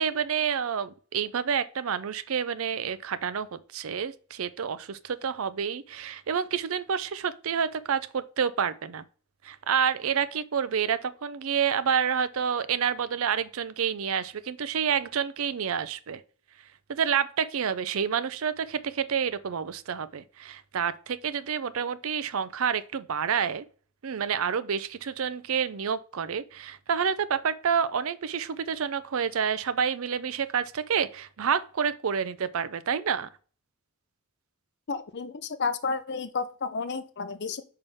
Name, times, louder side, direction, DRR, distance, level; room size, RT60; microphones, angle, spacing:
voice 1, 0.0-9.0 9.4-16.2 16.9-23.6 24.0-33.3, right 7 dB, 65° right, 0.5 m, -28 dB
voice 2, 34.9-37.6, left 4 dB, 50° left, 0.6 m, -31 dB
5.6 x 5.3 x 3.5 m
head